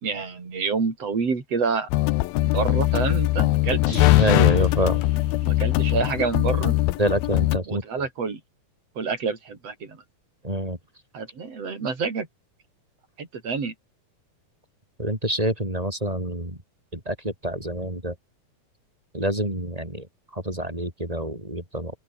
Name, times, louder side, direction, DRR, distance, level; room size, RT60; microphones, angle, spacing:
voice 1, 0.0-1.9 2.4-4.0 5.4-6.8 7.7-8.4 9.0-10.0 11.1-12.3 13.2-13.7, right 5 dB, 40° right, 5.3 m, -28 dB
sound 1, 1.9-7.6, left 18 dB, 90° left, 2.7 m, -21 dB
sound 2, 3.8-5.9, left 3 dB, 30° left, 5.5 m, -35 dB
voice 2, 4.2-5.0 7.0-7.8 10.4-10.8 15.0-16.6 16.9-18.1 19.1-20.1 20.3-21.9, right 1 dB, 10° right, 7.5 m, -26 dB
open air
omnidirectional pair, 4.2 m